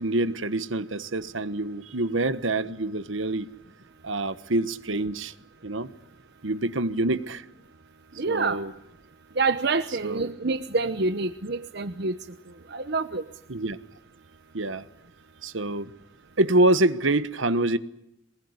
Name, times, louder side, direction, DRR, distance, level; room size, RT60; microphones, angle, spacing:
voice 1, 0.0-3.5 4.0-5.3 5.6-5.9 6.4-7.4 8.3-8.7 10.0-10.3 13.5-13.8 14.5-14.9 15.4-15.9 16.4-17.8, right 2 dB, 75° right, 1.3 m, -26 dB
voice 2, 8.2-8.6 9.4-12.1 12.7-13.2, right 3 dB, 55° right, 1.0 m, -27 dB
23.5 x 20.5 x 9.7 m
head